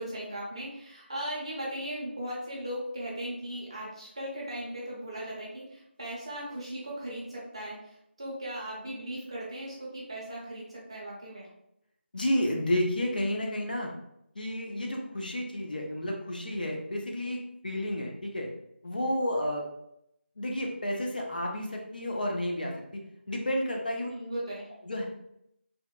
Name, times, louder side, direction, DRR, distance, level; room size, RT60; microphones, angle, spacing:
voice 1, 0.0-11.5 24.1-24.7, right 1 dB, 25° right, -5 dB, 0.5 m, -38 dB
voice 2, 12.1-13.9 14.4-17.4 17.6-18.5 18.8-19.6 20.4-23.0 23.3-24.1 24.9-25.1, left 1 dB, 45° left, 0 dB, 0.4 m, -31 dB
2.8 x 2.1 x 2.2 m, 0.78 s
figure-of-eight pair, 180°, 7 cm